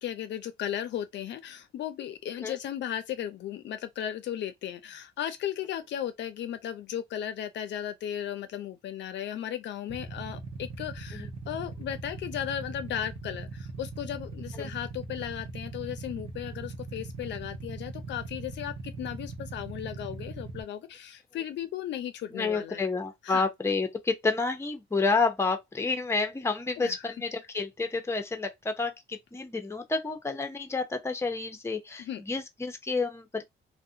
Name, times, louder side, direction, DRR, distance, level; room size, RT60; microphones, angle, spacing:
voice 1, 0.0-22.8 23.2-23.5 26.8-27.1 32.0-32.2, left 10 dB, 65° left, 0.4 m, -36 dB
Motorcycle / Idling, 9.9-20.6, right 3 dB, 30° right, 0.8 m, -40 dB
voice 2, 22.3-33.4, left 4 dB, 15° left, 0.6 m, -30 dB
2.4 x 2.1 x 2.7 m
cardioid pair, 90°, 20 cm